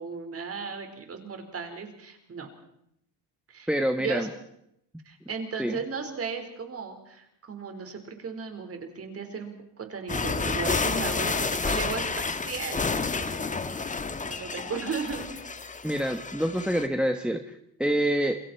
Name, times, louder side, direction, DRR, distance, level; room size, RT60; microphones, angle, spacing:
voice 1, 0.0-2.5 3.5-3.7 4.0-4.3 5.0-13.5 14.2-15.3, right 5 dB, 30° right, 6 dB, 4.7 m, -36 dB
voice 2, 3.7-4.3 5.6-5.8 15.8-18.4, right 1 dB, ahead, 7 dB, 1.2 m, -27 dB
sound 1, 10.1-16.9, left 4 dB, 15° left, 1.5 m, -30 dB
28.0 x 22.0 x 4.5 m, 0.74 s
cardioid pair, 135°, 44 cm